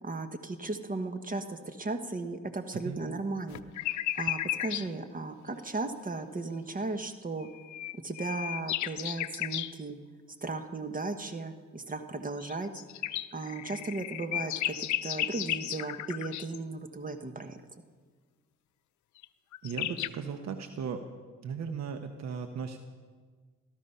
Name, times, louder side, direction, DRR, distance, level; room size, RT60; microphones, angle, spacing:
voice 1, 0.0-7.5 8.0-10.0 10.4-12.7 13.3-17.6, right 3 dB, 25° right, 8 dB, 1.2 m, -36 dB
sound 1, 3.5-4.9 7.4-9.7 12.4-16.6 19.2-19.3 19.5-20.1, left 13 dB, 70° left, 0.6 m, -34 dB
voice 2, 19.6-21.0 21.4-22.8, right 6 dB, 65° right, 7 dB, 1.0 m, -36 dB
18.5 x 13.5 x 5.6 m, 1.5 s
cardioid pair, 90°, 30 cm